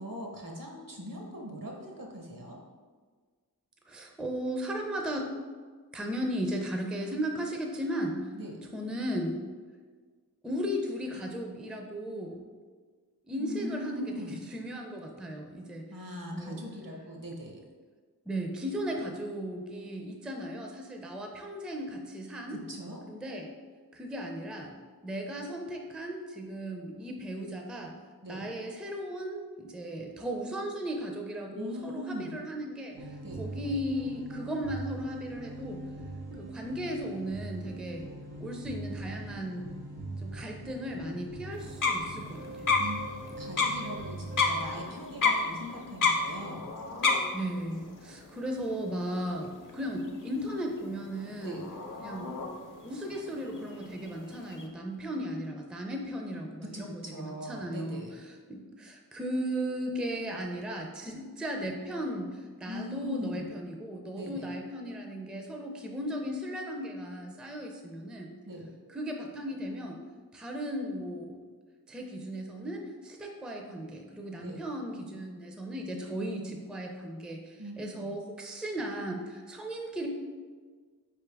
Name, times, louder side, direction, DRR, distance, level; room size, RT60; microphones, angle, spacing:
voice 1, 0.0-2.6 8.3-8.6 13.4-14.4 15.9-17.6 22.5-23.0 28.2-28.5 31.5-32.4 33.2-33.4 42.8-46.7 51.4-51.6 56.6-58.2 62.7-63.5 64.1-64.5 68.4-68.7 74.4-74.6 77.6-78.1, equal, 60° right, 0 dB, 0.9 m, -41 dB
voice 2, 3.9-5.3 5.9-8.3 8.6-9.4 10.4-12.4 13.3-15.9 16.3-16.6 18.3-22.6 23.1-23.5 23.9-24.7 25.0-27.9 28.3-35.8 36.4-38.1 38.4-39.7 40.2-42.7 47.3-51.6 52.0-52.3 52.8-68.3 68.9-70.0 70.3-71.4 71.9-80.1, equal, ahead, 2 dB, 0.4 m, -36 dB
sound 1, 32.9-44.7, right 2 dB, 90° right, 1.0 m, -41 dB
sound 2, 41.5-54.7, left 4 dB, 55° left, 0.6 m, -33 dB
4.4 x 3.4 x 3.3 m, 1.5 s
wide cardioid pair, 45°, 37 cm